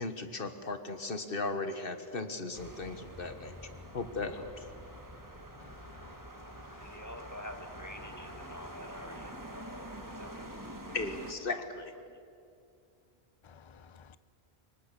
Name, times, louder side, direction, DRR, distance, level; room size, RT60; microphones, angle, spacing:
voice 1, 0.0-4.7 10.9-11.9, left 3 dB, 65° left, 1.5 m, -37 dB
sound 1, 2.5-11.3, right 1 dB, 20° right, 1.7 m, -46 dB
voice 2, 5.6-7.1 8.0-8.1 8.4-8.7 13.4-14.2, left 6 dB, 35° left, 0.6 m, -57 dB
voice 3, 6.7-9.9 10.2-11.0 11.5-11.7 12.0-12.2, left 1 dB, 15° left, 1.8 m, -48 dB
25.5 x 23.0 x 6.8 m
omnidirectional pair, 1.0 m